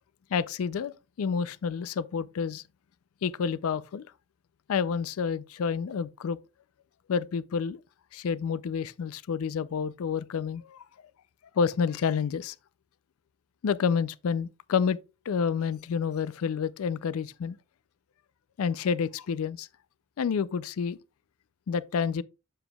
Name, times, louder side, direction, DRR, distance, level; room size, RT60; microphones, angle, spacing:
voice 1, 0.3-2.6 3.2-4.1 4.7-6.4 7.1-7.8 8.1-10.8 11.5-12.6 13.6-15.0 15.3-17.6 18.6-19.7 20.2-21.0 21.7-22.2, left 6 dB, 80° left, 0.4 m, -29 dB
7.7 x 7.0 x 2.3 m
head